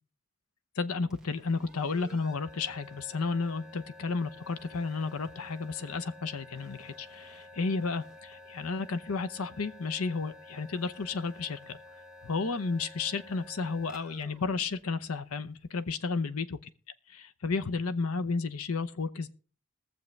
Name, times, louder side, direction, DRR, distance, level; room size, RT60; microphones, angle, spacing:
voice 1, 0.8-11.8 12.2-16.6 17.1-19.3, left 4 dB, 80° left, 12 dB, 0.7 m, -32 dB
sound 1, 1.0-15.6, left 1 dB, 5° right, 1.2 m, -51 dB
21.0 x 7.2 x 3.3 m, 0.40 s
head